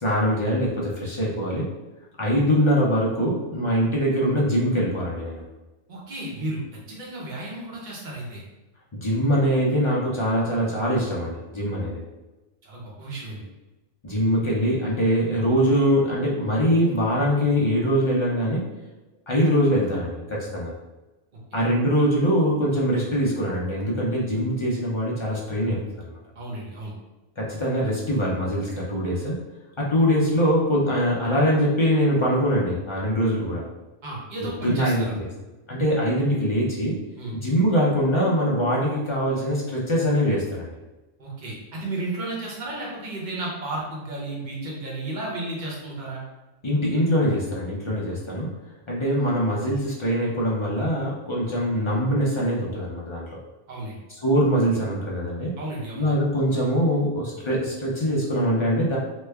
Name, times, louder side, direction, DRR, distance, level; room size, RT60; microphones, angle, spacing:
voice 1, 0.0-1.7 2.2-5.4 8.9-12.0 14.0-18.7 19.3-20.7 21.5-26.2 27.4-29.4 29.8-33.6 34.6-35.3 35.7-37.0 37.3-40.7 46.6-48.6 48.9-53.4 54.2-55.6 56.0-59.0, equal, 50° left, -4 dB, 0.3 m, -23 dB
voice 2, 5.9-6.6 6.9-8.4 12.6-13.4 26.3-26.9 34.0-35.1 37.2-37.3 41.2-46.2 53.7-54.0 55.6-56.1, right 2 dB, 40° right, -4 dB, 0.9 m, -33 dB
3.1 x 2.2 x 3.3 m, 1.1 s
omnidirectional pair, 1.4 m